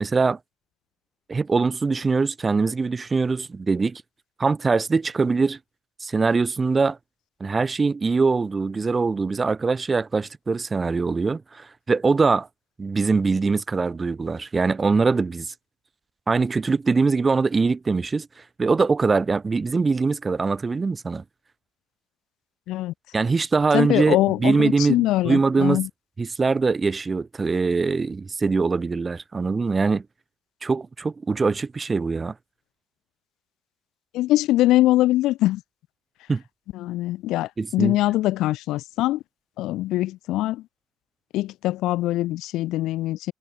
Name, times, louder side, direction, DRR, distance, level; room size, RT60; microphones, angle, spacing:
voice 1, 0.0-0.4 1.3-4.0 4.4-5.6 6.0-7.0 7.4-12.5 12.8-15.5 16.3-18.3 18.6-21.2 23.1-25.8 26.2-30.0 30.6-32.3 36.3-36.4 37.6-38.0, right 4 dB, 25° right, 0.5 m, -22 dB
voice 2, 23.7-25.9 34.1-35.6 36.7-39.2 39.6-40.6 41.3-43.3, left 16 dB, 70° left, 0.5 m, -23 dB
supercardioid pair, 80°, 0 cm